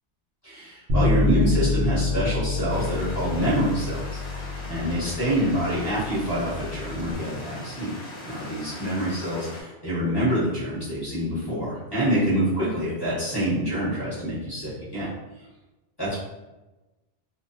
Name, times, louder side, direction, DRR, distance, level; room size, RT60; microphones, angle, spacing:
voice 1, 0.4-4.2 4.7-7.9 8.2-15.1 16.0-16.2, right 1 dB, 20° left, -10 dB, 1.1 m, -26 dB
Bass guitar, 0.9-7.1, left 3 dB, 75° right, 0.9 m, -27 dB
sound 1, 2.7-9.6, left 1 dB, 60° left, 0.6 m, -40 dB
2.4 x 2.1 x 2.4 m, 1.1 s
omnidirectional pair, 1.2 m